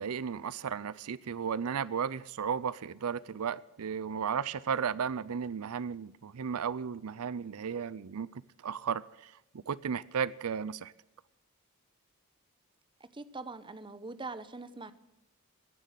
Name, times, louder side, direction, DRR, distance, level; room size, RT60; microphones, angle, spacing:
voice 1, 0.0-8.3 8.6-9.3 9.7-10.9, right 7 dB, 80° right, 20 dB, 0.5 m, -34 dB
voice 2, 13.1-14.9, right 3 dB, 20° right, 13 dB, 0.9 m, -42 dB
16.0 x 10.5 x 7.5 m, 0.93 s
head